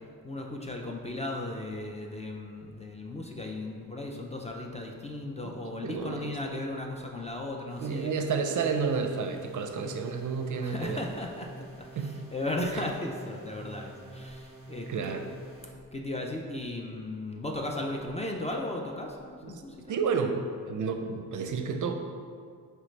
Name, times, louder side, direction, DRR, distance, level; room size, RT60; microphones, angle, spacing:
voice 1, 0.2-8.1 10.6-11.5 11.8-15.2 15.9-20.0, left 1 dB, 20° left, 1 dB, 0.4 m, -36 dB
voice 2, 5.8-6.4 7.8-11.0 12.0-12.2 12.7-12.8 14.9-15.3 19.4-19.6 19.9-20.4 20.7-21.9, right 5 dB, 55° right, 5 dB, 0.5 m, -31 dB
sound 1, 7.7-15.7, right 1 dB, 35° left, 1.3 m, -46 dB
5.2 x 3.2 x 3.2 m, 2.1 s
cardioid pair, 85°, 37 cm